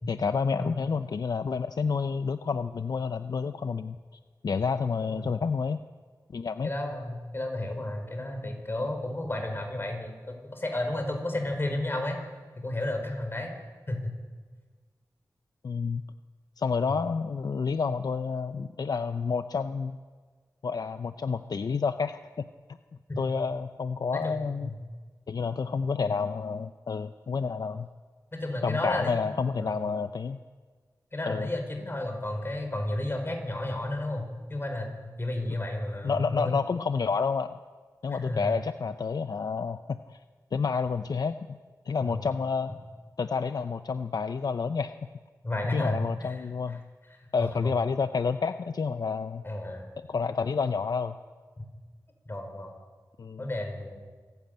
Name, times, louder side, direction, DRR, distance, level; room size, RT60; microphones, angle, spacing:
voice 1, 0.1-4.0 4.4-5.8 6.3-6.7 15.6-16.0 16.6-20.0 20.6-22.2 23.2-24.7 25.3-27.9 28.6-30.4 31.3-31.5 36.0-37.6 38.0-40.2 40.5-41.6 41.9-42.7 43.2-44.9 45.7-46.8 47.3-49.4 50.1-51.1 53.2-53.5, left 5 dB, 70° left, 10 dB, 0.6 m, -29 dB
voice 2, 5.0-5.3 6.6-12.2 12.6-13.5 13.9-14.1 23.1-23.2 24.1-24.8 28.3-29.8 31.1-36.5 38.1-38.6 42.0-42.2 45.4-46.3 47.4-47.7 49.4-49.9 51.6-51.7 52.3-52.7 53.4-54.0, left 1 dB, 35° left, 4 dB, 4.8 m, -32 dB
26.5 x 11.5 x 9.2 m, 1.5 s
wide cardioid pair, 80°, 7 cm